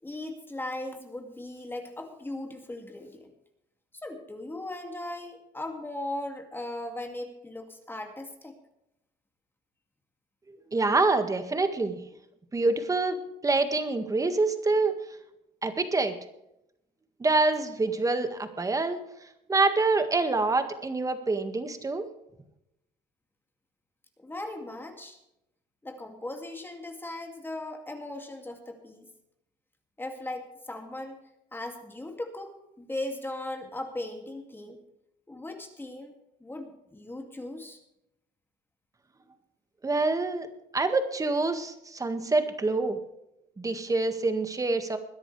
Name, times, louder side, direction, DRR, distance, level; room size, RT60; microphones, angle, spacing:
voice 1, 0.0-3.3 4.0-8.5 24.2-25.2 25.8-29.1 30.0-31.2 31.5-34.8 35.3-36.1 36.4-37.8, left 1 dB, 10° left, 4 dB, 2.3 m, -38 dB
voice 2, 10.7-12.0 12.5-15.0 15.6-16.1 17.2-19.1 19.5-22.0 39.8-40.5 40.7-43.0 43.6-45.0, right 3 dB, 20° right, 8 dB, 1.8 m, -26 dB
21.5 x 10.5 x 3.3 m, 0.84 s
cardioid pair, 110°, 17 cm